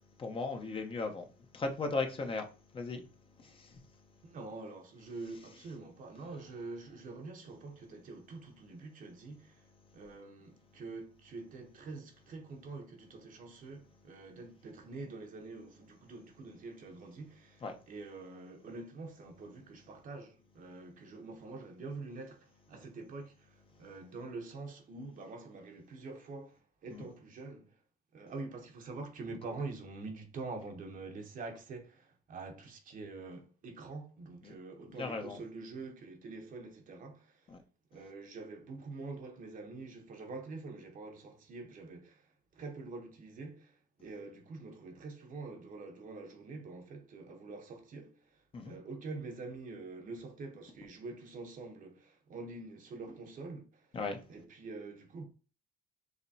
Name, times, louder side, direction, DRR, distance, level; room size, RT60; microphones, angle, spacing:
voice 1, 0.2-1.3 1.5-2.5 2.7-3.0 3.4-3.8 17.6-17.7 26.9-27.1 34.4-34.5 35.0-35.4 37.5-37.6 48.5-48.7 53.9-54.2, left 3 dB, 30° left, 0.9 m, -37 dB
voice 2, 4.2-9.7 9.9-27.8 28.1-37.5 37.9-54.0 54.3-55.3, right 3 dB, 50° right, 1.0 m, -46 dB
5.0 x 3.0 x 2.7 m
cardioid pair, 110°, 17 cm